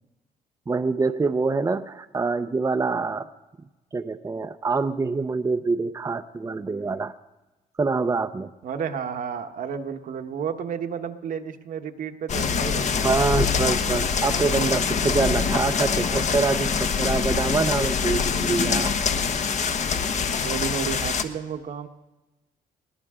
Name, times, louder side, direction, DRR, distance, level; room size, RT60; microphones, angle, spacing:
voice 1, 0.7-3.3 3.9-7.1 7.8-8.5 13.0-18.9, right 4 dB, 20° right, 8 dB, 0.7 m, -25 dB
voice 2, 8.6-13.2 20.4-21.9, right 7 dB, 65° right, 6 dB, 1.3 m, -32 dB
sound 1, 12.3-21.2, left 6 dB, 50° left, 1.2 m, -24 dB
21.0 x 16.5 x 3.7 m, 1.1 s
cardioid pair, 80°, 15 cm